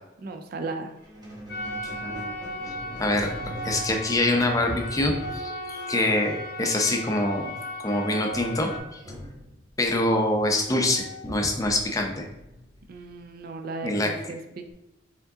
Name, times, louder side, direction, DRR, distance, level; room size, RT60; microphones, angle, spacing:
voice 1, 0.2-0.9 12.9-14.7, right 3 dB, 50° right, 6 dB, 0.4 m, -36 dB
Squeak, 1.0-7.3 8.3-13.4, equal, 20° right, 0.9 m, -43 dB
sound 1, 1.5-8.8, left 1 dB, 55° left, 0.8 m, -36 dB
voice 2, 2.0-2.3 3.0-3.3 3.6-7.5 7.8-9.0 9.8-12.3 13.8-14.1, left 1 dB, 15° left, 2 dB, 0.5 m, -25 dB
4.6 x 3.7 x 2.7 m, 0.92 s
head